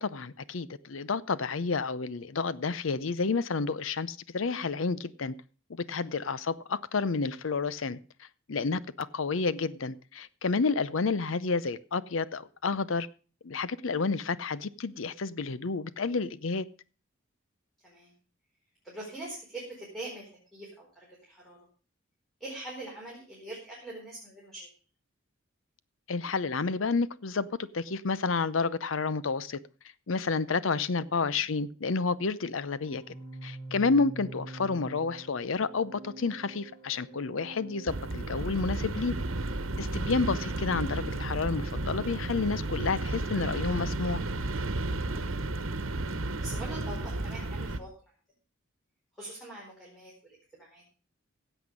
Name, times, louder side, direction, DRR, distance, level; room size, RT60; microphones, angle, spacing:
voice 1, 0.0-5.3 5.7-13.1 13.4-16.7 26.1-29.6 30.1-33.0 33.4-39.1 39.8-44.2, left 4 dB, 70° left, 17 dB, 0.7 m, -30 dB
voice 2, 18.8-20.9 21.3-21.6 22.4-24.7 39.8-40.0 45.1-45.4 46.4-47.9 49.2-50.8, right 2 dB, ahead, -4 dB, 4.4 m, -43 dB
Organ, 32.8-43.6, right 2 dB, 35° left, 7.3 m, -47 dB
sound 1, 37.9-47.8, right 2 dB, 85° right, 1.2 m, -33 dB
15.5 x 8.1 x 5.2 m, 0.37 s
head